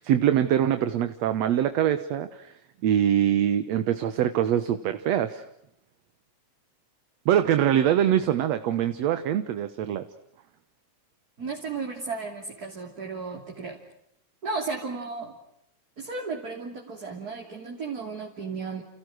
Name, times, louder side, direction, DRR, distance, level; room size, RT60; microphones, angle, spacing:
voice 1, 0.0-2.5 2.8-5.4 7.3-10.0, right 10 dB, 65° right, 10 dB, 2.3 m, -23 dB
voice 2, 11.4-13.8 14.4-15.3 16.0-18.8, right 4 dB, 30° right, 1 dB, 3.4 m, -34 dB
30.0 x 30.0 x 6.4 m, 0.76 s
omnidirectional pair, 3.4 m